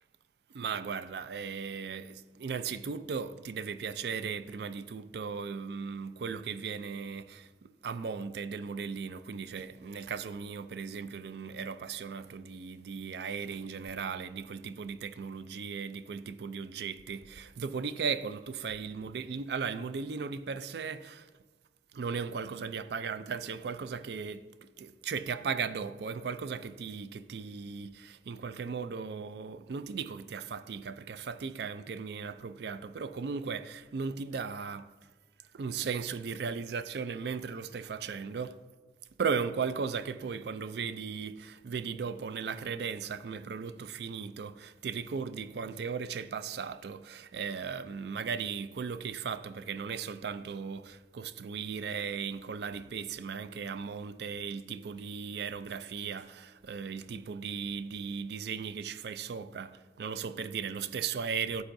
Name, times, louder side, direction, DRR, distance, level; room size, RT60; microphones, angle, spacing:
voice 1, 0.5-21.3 21.9-34.9 35.5-38.6 39.2-61.6, right 5 dB, 65° right, 0.4 m, -37 dB
13.0 x 8.0 x 2.6 m
head